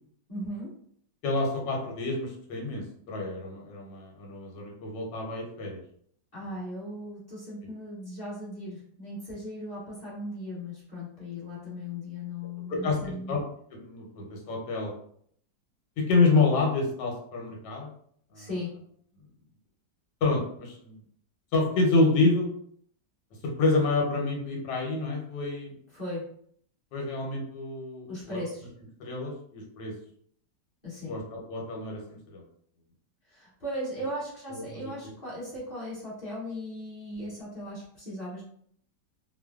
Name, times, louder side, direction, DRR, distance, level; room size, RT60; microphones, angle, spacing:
voice 1, 0.3-0.7 6.3-13.4 18.3-18.7 25.9-26.3 28.1-28.7 30.8-31.1 33.2-38.4, left 1 dB, 25° left, -8 dB, 1.1 m, -37 dB
voice 2, 1.2-5.8 12.7-13.4 13.7-14.9 16.0-17.9 18.3-18.5 20.2-21.0 21.5-22.5 23.4-25.7 26.9-28.4 29.0-29.9 31.1-32.0 32.3-32.4 34.5-34.9, left 3 dB, 85° left, -1 dB, 1.4 m, -28 dB
3.2 x 2.0 x 2.3 m, 0.64 s
omnidirectional pair, 1.9 m